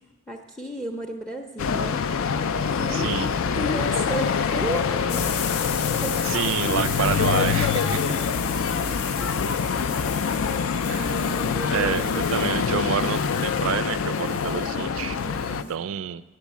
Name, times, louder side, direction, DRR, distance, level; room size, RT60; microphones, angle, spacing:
voice 1, 0.3-2.0 2.6-3.3 3.6-5.5 6.0-7.4 7.9-8.3 9.1-9.5 10.9-12.1 15.2-15.7, right 1 dB, 5° left, 3 dB, 0.4 m, -34 dB
sound 1, 1.6-15.6, left 6 dB, 65° left, 0.4 m, -25 dB
voice 2, 2.9-3.3 6.2-8.0 10.9-11.1 11.7-15.2 15.5-16.2, right 8 dB, 65° right, 17 dB, 0.3 m, -28 dB
sound 2, 5.1-15.7, left 8 dB, 85° left, 0.8 m, -36 dB
8.1 x 6.8 x 8.3 m, 1.3 s
head